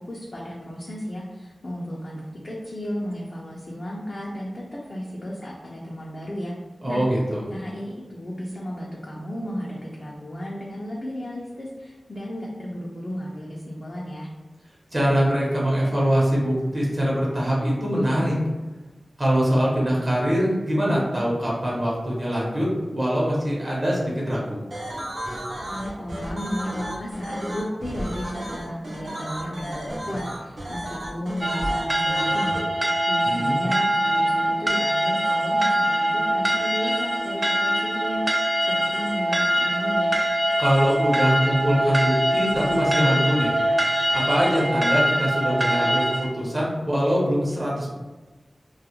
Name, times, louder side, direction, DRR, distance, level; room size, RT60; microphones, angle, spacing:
voice 1, 0.0-6.5 6.9-7.0 7.5-14.3 25.6-40.2, equal, 50° left, -4 dB, 0.4 m, -34 dB
voice 2, 6.8-7.4 14.9-18.3 19.2-24.6 33.2-33.6 40.6-43.5 44.1-47.9, equal, 40° right, -5 dB, 0.9 m, -23 dB
sound 1, 24.7-32.6, equal, 80° right, 0.6 m, -33 dB
sound 2, 31.4-46.3, right 1 dB, 20° right, 0.3 m, -23 dB
2.3 x 2.0 x 2.9 m, 1.2 s
wide cardioid pair, 55°, 0 cm